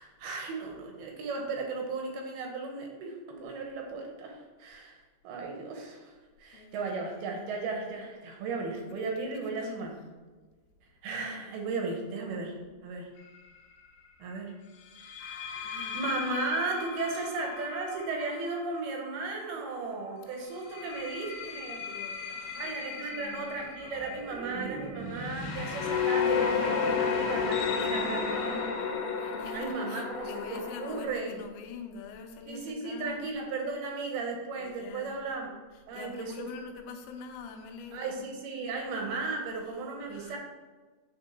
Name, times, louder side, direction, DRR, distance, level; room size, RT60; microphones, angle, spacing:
voice 1, 0.0-10.0 11.0-12.6 12.8-13.1 14.2-14.5 15.7-21.9 22.6-28.6 29.5-31.4 32.5-35.5 35.9-36.5 37.9-40.4, right 3 dB, 70° right, 1 dB, 2.6 m, -35 dB
voice 2, 6.5-7.5 9.0-10.0 15.2-16.0 17.0-17.3 20.8-20.9 21.9-24.2 27.3-33.2 34.6-35.3 35.7-38.3 38.6-39.2 40.1-40.4, left 5 dB, 85° left, 3 dB, 3.0 m, -46 dB
sound 1, 13.2-13.5 15.0-19.7 20.5-31.0, left 6 dB, 70° left, 2.8 m, -33 dB
sound 2, 23.4-26.6 27.0-27.3, right 1 dB, 90° right, 3.7 m, -41 dB
9.3 x 4.4 x 4.3 m, 1.3 s
omnidirectional pair, 5.2 m